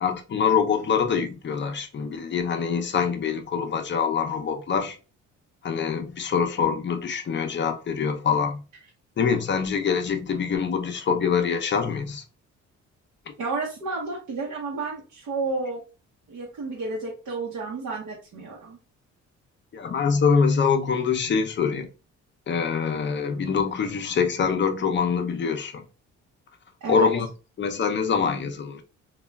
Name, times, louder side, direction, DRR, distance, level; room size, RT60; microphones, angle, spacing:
voice 1, 0.0-5.0 5.6-8.6 9.2-12.2 19.7-21.9 22.5-25.8 26.9-27.3 27.6-28.8, left 6 dB, 40° left, 0.6 m, -24 dB
voice 2, 13.4-15.8 16.3-18.8 26.8-27.1, right 3 dB, 65° right, 0.8 m, -31 dB
3.1 x 2.3 x 2.2 m
cardioid pair, 90°, 30 cm